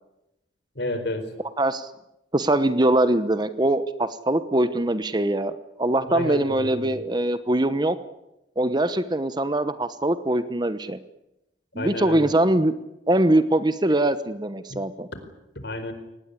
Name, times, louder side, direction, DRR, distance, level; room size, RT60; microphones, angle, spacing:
voice 1, 0.8-1.3 6.1-7.0 11.7-12.3 14.7-14.8 15.5-15.9, left 1 dB, 60° left, 9 dB, 4.7 m, -31 dB
voice 2, 1.6-1.9 2.3-5.5 5.8-8.0 8.6-11.0 11.7-12.7 13.1-15.1, right 1 dB, 20° right, 12 dB, 1.0 m, -22 dB
24.5 x 19.5 x 9.8 m, 0.90 s
head